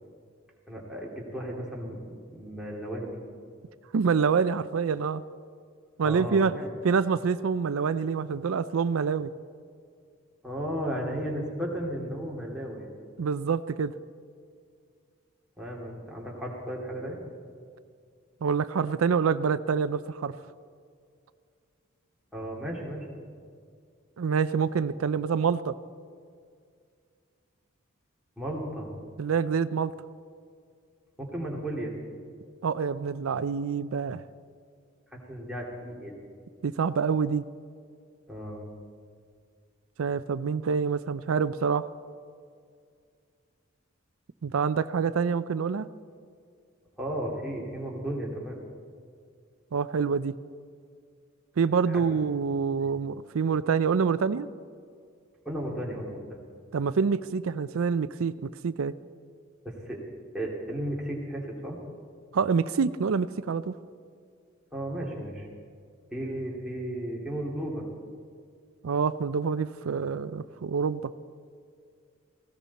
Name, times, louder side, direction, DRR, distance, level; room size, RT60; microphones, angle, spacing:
voice 1, 0.7-3.2 6.0-6.7 10.4-12.9 15.6-17.2 22.3-23.3 28.4-28.9 31.2-31.9 35.1-36.2 38.3-38.7 47.0-48.6 51.9-52.0 52.8-52.9 55.4-56.4 59.6-60.0 60.3-61.8 64.7-65.5 66.1-67.9, right 1 dB, 5° right, -4 dB, 2.6 m, -34 dB
voice 2, 3.9-5.2 6.0-6.5 6.8-9.3 13.2-13.9 18.4-20.3 24.2-25.7 29.2-29.9 32.6-34.2 36.6-37.4 40.0-41.9 44.4-45.9 49.7-50.3 51.6-54.5 56.7-58.3 58.6-58.9 62.3-63.7 68.8-71.0, right 5 dB, 90° right, 14 dB, 0.4 m, -26 dB
19.0 x 16.5 x 4.2 m, 2.2 s
head